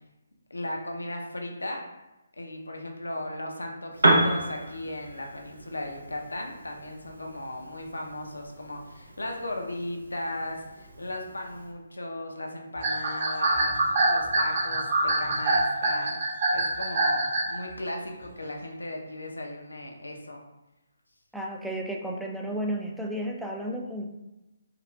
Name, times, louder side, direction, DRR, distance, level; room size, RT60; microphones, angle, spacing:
voice 1, 0.5-1.8 2.4-16.1 16.5-20.4, left 1 dB, 80° left, 1 dB, 0.6 m, -36 dB
Piano, 3.9-11.7, right 2 dB, 75° right, 0.7 m, -31 dB
sound 1, 12.8-17.6, right 2 dB, 50° right, 1.1 m, -24 dB
voice 2, 21.3-24.1, right 1 dB, ahead, -1 dB, 0.3 m, -32 dB
4.8 x 2.4 x 2.3 m, 0.98 s
figure-of-eight pair, 140°, 0 cm